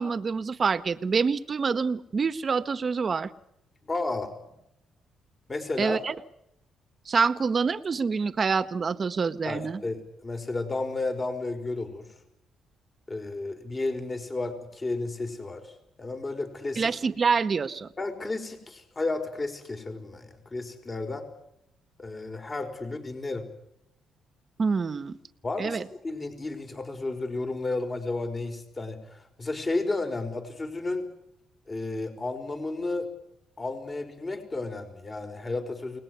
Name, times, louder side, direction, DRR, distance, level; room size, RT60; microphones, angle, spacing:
voice 1, 0.0-3.3 5.8-6.1 7.1-9.8 16.8-17.9 24.6-25.2 25.6-25.8, right 5 dB, 40° right, 12 dB, 1.5 m, -26 dB
voice 2, 3.9-4.3 5.5-6.0 9.5-12.1 13.1-16.9 18.0-21.3 22.0-23.5 25.4-31.1 31.7-33.1 33.6-36.0, left 2 dB, 30° left, 6 dB, 5.3 m, -32 dB
30.0 x 19.5 x 9.7 m, 0.80 s
cardioid pair, 90°, 0 cm